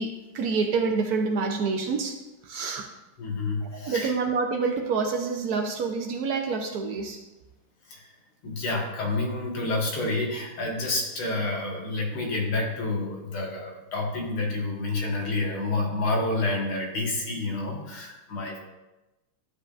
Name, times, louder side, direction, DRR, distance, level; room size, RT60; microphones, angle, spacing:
voice 1, 0.0-2.2 2.4-2.9 3.6-7.2, right 4 dB, 75° right, 4 dB, 0.8 m, -27 dB
voice 2, 3.2-4.1 7.9-8.1 8.4-18.6, left 2 dB, 80° left, 0 dB, 2.3 m, -29 dB
11.0 x 7.4 x 2.4 m, 1.0 s
omnidirectional pair, 2.3 m